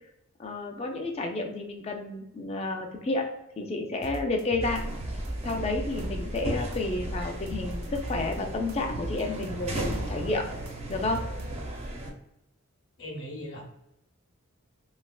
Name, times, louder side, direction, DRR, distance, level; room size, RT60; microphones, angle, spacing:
voice 1, 0.4-3.3 3.6-4.8 5.4-10.5 10.9-11.2, left 2 dB, 30° left, 3 dB, 0.4 m, -31 dB
sound 1, 4.0-6.4 6.7-8.4 8.7-11.9, right 1 dB, 80° right, 0.5 m, -39 dB
sound 2, 4.6-12.1, right 1 dB, 30° right, 0.5 m, -35 dB
voice 2, 13.0-13.6, equal, 55° left, 0 dB, 0.8 m, -38 dB
3.2 x 2.7 x 2.3 m, 0.86 s
head